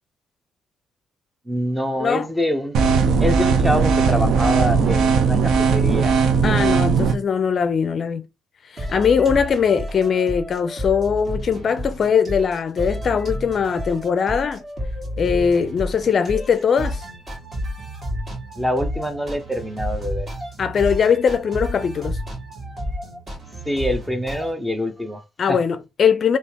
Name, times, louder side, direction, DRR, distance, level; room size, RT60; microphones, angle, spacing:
voice 1, 1.5-2.8 3.2-6.2 18.6-20.3 23.7-25.2 25.5-25.6, equal, 5° right, 0.7 m, -25 dB
sound 1, 2.7-7.1, right 5 dB, 75° right, 0.6 m, -18 dB
voice 2, 6.4-8.2 8.7-14.6 15.2-17.0 20.6-22.2 25.4-26.4, left 6 dB, 50° left, 0.4 m, -20 dB
sound 2, 8.8-24.5, equal, 35° right, 1.9 m, -31 dB
3.5 x 2.8 x 2.8 m
cardioid pair, 90°, 0 cm